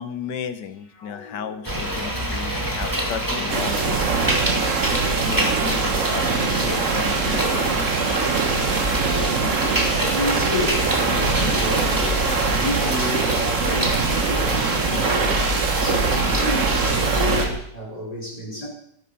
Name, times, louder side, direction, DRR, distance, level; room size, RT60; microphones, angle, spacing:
voice 1, 0.0-4.3 5.0-8.0, left 8 dB, 85° left, 11 dB, 1.6 m, -34 dB
sound 1, 0.7-9.6 10.0-17.8, left 4 dB, 65° left, 2.3 m, -42 dB
sound 2, 1.6-17.5, equal, 10° right, 2.3 m, -26 dB
sound 3, 3.5-17.5, right 5 dB, 50° right, 1.5 m, -23 dB
voice 2, 8.9-18.7, left 1 dB, 20° left, -3 dB, 4.8 m, -31 dB
13.0 x 12.0 x 5.5 m, 0.69 s
omnidirectional pair, 1.8 m